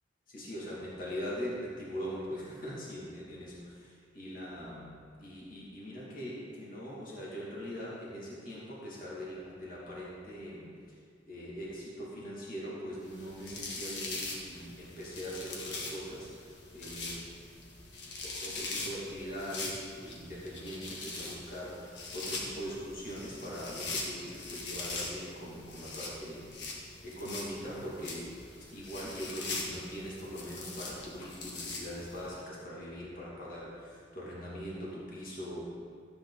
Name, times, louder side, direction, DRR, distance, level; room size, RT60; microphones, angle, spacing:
voice 1, 0.3-4.9 5.2-11.0 11.3-17.3 18.2-26.5 27.0-28.3 28.6-35.6, equal, 50° left, -6 dB, 2.7 m, -41 dB
sound 1, 13.1-32.3, left 3 dB, 70° left, 1.8 m, -42 dB
13.0 x 8.7 x 4.2 m, 2.2 s
head